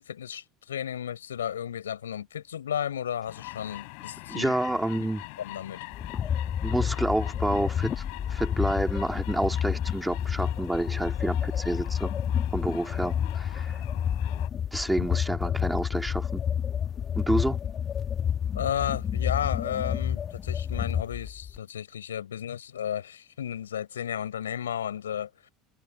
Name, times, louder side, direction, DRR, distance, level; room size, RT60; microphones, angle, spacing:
voice 1, 0.0-4.5 4.9-5.1 5.4-5.8 15.0-15.1 18.5-25.3, left 9 dB, 80° left, 6.7 m, -33 dB
sound 1, 3.3-14.5, left 36 dB, 60° left, 5.9 m, -44 dB
voice 2, 4.3-5.2 6.6-8.0 8.3-12.1 12.5-13.8 14.7-16.4 17.1-17.6, right 1 dB, 5° right, 3.3 m, -29 dB
sound 2, 5.9-21.6, left 8 dB, 35° left, 2.5 m, -29 dB
figure-of-eight pair, 70°, 0 cm